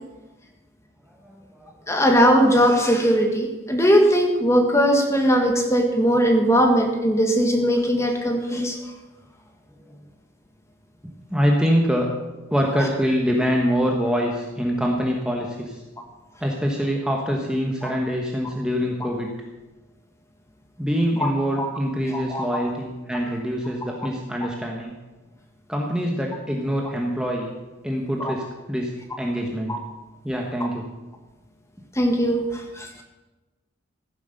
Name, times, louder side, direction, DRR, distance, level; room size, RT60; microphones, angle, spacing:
voice 1, 1.2-1.7 9.8-10.0 11.0-12.1 12.5-15.8 16.4-19.3 20.8-24.9 25.7-27.5 27.8-29.8 30.2-30.9, equal, 5° right, 0 dB, 1.3 m, -25 dB
voice 2, 1.9-8.8 17.8-18.0 21.2-21.3 21.6-21.7 22.1-22.6 28.2-28.3 31.9-33.0, equal, 15° left, 3 dB, 1.6 m, -19 dB
15.0 x 9.9 x 6.7 m, 1.1 s
head